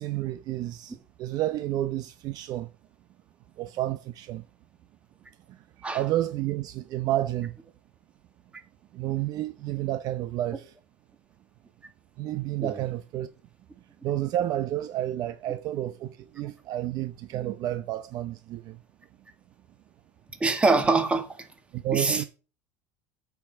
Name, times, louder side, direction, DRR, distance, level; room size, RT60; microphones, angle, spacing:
voice 1, 0.0-2.7 3.6-4.4 5.5-7.5 8.9-10.7 12.2-13.3 14.0-18.8 21.7-22.2, right 13 dB, 45° right, 0.7 m, -30 dB
voice 2, 20.4-21.5 21.9-22.3, right 3 dB, 15° right, 2.0 m, -24 dB
8.7 x 5.9 x 7.3 m
supercardioid pair, 135°, 9 cm